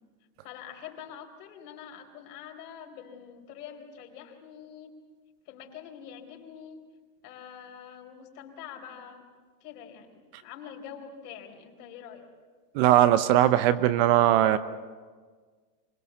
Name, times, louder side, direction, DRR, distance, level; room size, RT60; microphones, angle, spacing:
voice 1, 0.4-4.9 5.5-6.8 7.2-9.2 9.6-12.3, left 8 dB, 65° left, 2 dB, 4.2 m, -45 dB
voice 2, 12.7-14.6, right 13 dB, 35° right, 13 dB, 0.7 m, -20 dB
25.5 x 18.5 x 7.2 m, 1.5 s
supercardioid pair, 145°, 49 cm